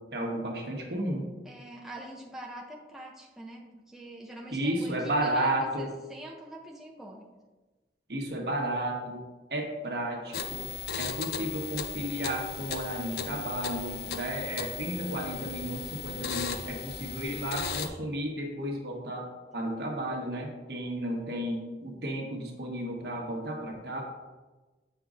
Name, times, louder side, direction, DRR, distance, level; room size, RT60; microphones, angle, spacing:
voice 1, 0.1-1.2 4.5-5.9 8.1-9.2 9.5-10.6 11.0-19.2 19.5-24.0, right 1 dB, 65° right, 0 dB, 1.2 m, -33 dB
voice 2, 1.4-7.3, right 1 dB, ahead, -2 dB, 0.5 m, -44 dB
sound 1, 10.3-17.9, left 7 dB, 60° left, 0.5 m, -37 dB
7.7 x 5.1 x 2.4 m, 1.2 s
head